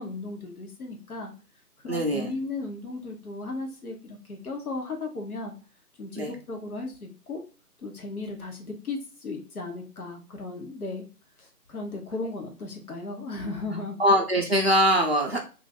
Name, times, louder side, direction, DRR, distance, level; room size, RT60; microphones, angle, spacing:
voice 1, 0.0-1.3 1.8-5.5 6.0-7.4 7.8-11.0 11.4-14.0, left 3 dB, 60° left, 2 dB, 1.1 m, -36 dB
voice 2, 1.9-2.3 6.2-6.3 14.0-15.5, equal, 40° right, -1 dB, 0.6 m, -22 dB
2.5 x 2.4 x 4.1 m, 0.35 s
figure-of-eight pair, 160°, 48 cm